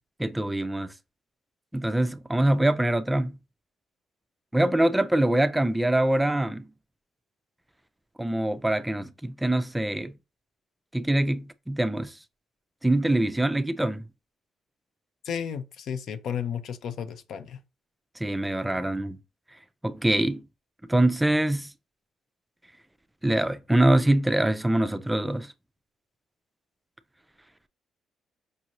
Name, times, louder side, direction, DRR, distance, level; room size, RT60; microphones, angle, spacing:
voice 1, 0.2-0.9 1.7-3.4 4.5-6.7 8.2-10.1 10.9-12.1 12.8-14.0 18.2-19.2 19.8-20.4 20.9-21.7 23.2-25.5, right 1 dB, 10° right, 0.3 m, -24 dB
voice 2, 15.2-17.6, left 8 dB, 70° left, 0.5 m, -33 dB
5.2 x 2.5 x 2.9 m
cardioid pair, 90°, 0 cm